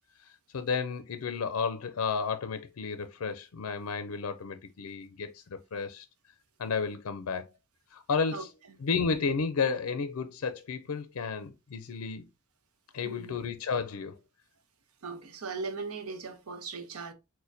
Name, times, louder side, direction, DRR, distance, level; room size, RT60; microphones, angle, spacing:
voice 1, 0.5-5.4 5.7-6.1 6.6-7.4 7.9-8.5 8.8-12.2 12.9-14.2, left 5 dB, 75° left, 0.5 m, -32 dB
voice 2, 13.0-13.4 15.0-17.1, right 4 dB, 85° right, 0.8 m, -38 dB
6.2 x 2.1 x 2.6 m
head